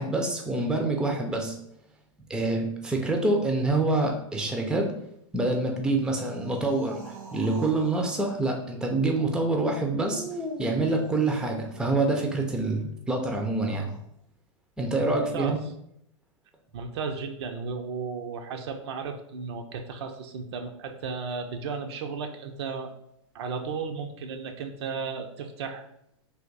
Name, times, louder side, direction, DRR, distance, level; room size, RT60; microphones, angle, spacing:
voice 1, 0.0-1.6 2.3-4.9 5.3-7.0 7.3-10.2 10.6-13.9 14.8-15.6, right 2 dB, 5° right, 2 dB, 0.5 m, -26 dB
sound 1, 5.9-8.2 10.1-11.9 13.5-14.0, equal, 80° right, 1.4 m, -41 dB
voice 2, 14.9-15.6 16.7-22.9 23.3-25.9, right 5 dB, 55° right, 5 dB, 0.5 m, -34 dB
3.4 x 2.5 x 3.9 m, 0.76 s
figure-of-eight pair, 105°, 17 cm